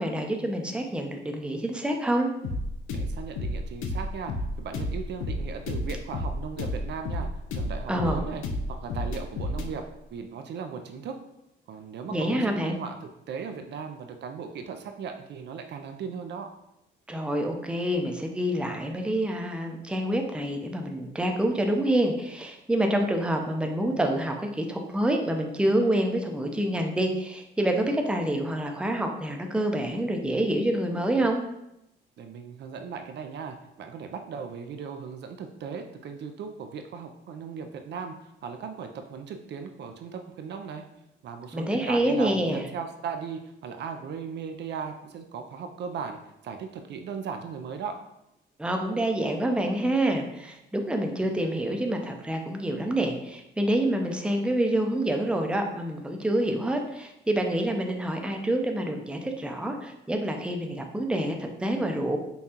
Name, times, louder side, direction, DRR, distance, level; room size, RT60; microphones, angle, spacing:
voice 1, 0.0-2.3 7.9-8.2 12.1-12.8 17.1-31.4 41.5-42.7 48.6-62.2, right 1 dB, 5° right, 3 dB, 0.5 m, -27 dB
sound 1, 2.4-9.7, left 1 dB, 90° left, 0.5 m, -31 dB
voice 2, 2.9-8.4 8.7-9.8 10.1-11.2 11.7-16.5 32.2-40.8 41.2-46.2 46.4-48.0, right 6 dB, 60° right, 5 dB, 0.4 m, -37 dB
5.3 x 2.3 x 2.8 m, 0.85 s
cardioid pair, 90°, 20 cm